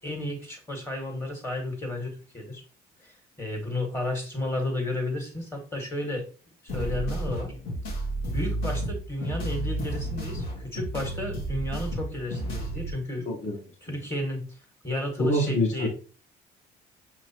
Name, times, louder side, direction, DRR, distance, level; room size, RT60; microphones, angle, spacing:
voice 1, 0.0-2.6 3.0-3.1 3.4-6.3 6.6-7.5 8.3-13.3 13.8-14.5 14.8-15.9, left 1 dB, 15° left, 2 dB, 1.6 m, -32 dB
sound 1, 6.7-12.9, right 1 dB, 85° left, 1.5 m, -32 dB
voice 2, 13.3-13.6 15.2-15.9, left 1 dB, 45° left, 1 dB, 1.0 m, -25 dB
5.9 x 3.0 x 2.8 m, 0.37 s
cardioid pair, 110°, 17 cm